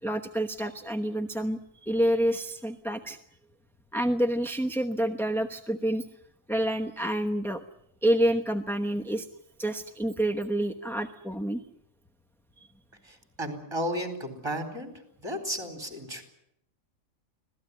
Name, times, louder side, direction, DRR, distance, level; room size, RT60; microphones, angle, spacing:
voice 1, 0.0-3.2 3.9-6.1 6.5-7.6 8.0-9.3 9.6-11.6, right 1 dB, ahead, 7 dB, 0.8 m, -28 dB
voice 2, 13.1-14.9 15.2-16.2, equal, 20° right, 7 dB, 4.3 m, -33 dB
25.5 x 18.0 x 9.6 m, 0.73 s
omnidirectional pair, 1.4 m